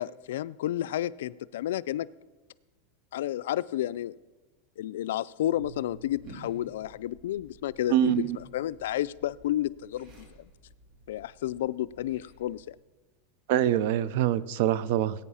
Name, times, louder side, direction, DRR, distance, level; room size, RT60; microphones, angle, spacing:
voice 1, 0.0-2.1 3.1-4.1 4.8-10.5 11.1-12.8, left 13 dB, 80° left, 17 dB, 0.4 m, -31 dB
sound 1, 5.5-12.8, right 2 dB, 35° right, 2.7 m, -51 dB
voice 2, 7.9-8.4 13.5-15.2, right 12 dB, 60° right, 19 dB, 0.6 m, -25 dB
19.0 x 9.1 x 5.6 m, 1.3 s
supercardioid pair, 150°, 0 cm